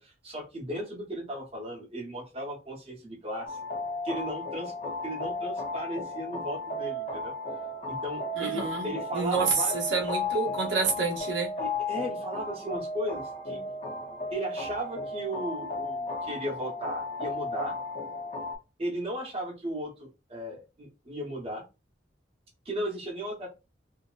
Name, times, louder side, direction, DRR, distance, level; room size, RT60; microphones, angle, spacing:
voice 1, 0.0-3.6 4.0-7.3 7.9-9.8 11.6-13.6 14.3-17.8 18.8-21.6 22.6-23.5, right 1 dB, 35° right, 0.9 m, -36 dB
sound 1, 3.5-18.6, left 2 dB, 40° left, 0.6 m, -34 dB
voice 2, 8.4-11.5, right 5 dB, 75° right, 0.8 m, -28 dB
2.7 x 2.0 x 2.3 m
head